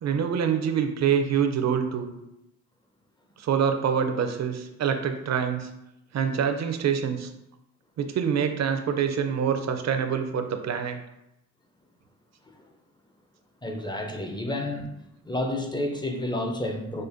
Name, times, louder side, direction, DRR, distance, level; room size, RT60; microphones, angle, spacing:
voice 1, 0.0-2.1 3.4-5.7 6.1-7.3 8.0-11.0, right 7 dB, 45° right, 7 dB, 0.5 m, -25 dB
voice 2, 13.6-14.9 15.2-17.0, left 1 dB, 15° left, 3 dB, 0.4 m, -30 dB
5.0 x 2.2 x 2.5 m, 0.86 s
cardioid pair, 80°, 36 cm